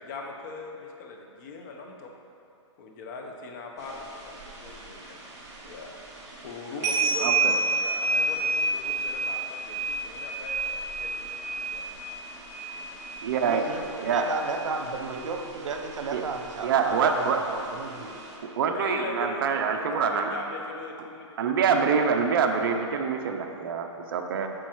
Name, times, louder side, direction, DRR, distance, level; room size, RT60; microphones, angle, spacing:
voice 1, 0.0-2.1 2.8-5.2 5.6-5.9 6.4-11.4 11.7-11.9 18.7-22.0 22.3-22.4, left 3 dB, 35° left, 2 dB, 0.8 m, -40 dB
sound 1, 3.8-18.4, right 3 dB, 20° right, 1.1 m, -32 dB
voice 2, 7.2-7.6 13.2-13.6 14.0-14.3 16.1-16.2 16.6-17.4 18.4-20.3 21.4-24.5, right 6 dB, 45° right, 5 dB, 0.6 m, -25 dB
voice 3, 13.4-13.8 14.1-18.1, right 4 dB, 80° right, 3 dB, 0.8 m, -33 dB
8.8 x 6.3 x 3.0 m, 2.6 s
hypercardioid pair, 150°, 16 cm